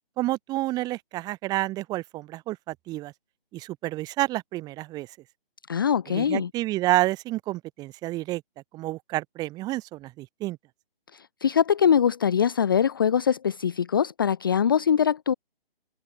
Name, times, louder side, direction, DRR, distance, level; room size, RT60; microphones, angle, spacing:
voice 1, 0.2-3.1 3.5-5.1 6.1-8.4 8.7-10.6, right 17 dB, 15° right, 3.9 m, -29 dB
voice 2, 5.7-6.5 11.1-15.3, left 8 dB, 25° left, 0.6 m, -23 dB
hypercardioid pair, 160°, 29 cm